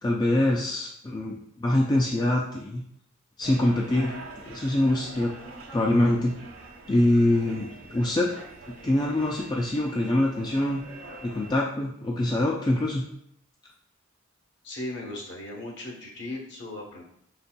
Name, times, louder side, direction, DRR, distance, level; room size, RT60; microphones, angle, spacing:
voice 1, 0.0-2.8 3.4-4.2 4.5-5.3 5.7-6.3 6.9-8.4 8.8-10.8 11.2-13.0, left 1 dB, 20° left, -2 dB, 0.3 m, -24 dB
sound 1, 3.4-11.5, right 2 dB, 75° right, 0.8 m, -45 dB
voice 2, 14.6-17.0, left 2 dB, 55° left, -1 dB, 1.0 m, -37 dB
5.1 x 4.0 x 2.2 m, 0.70 s
head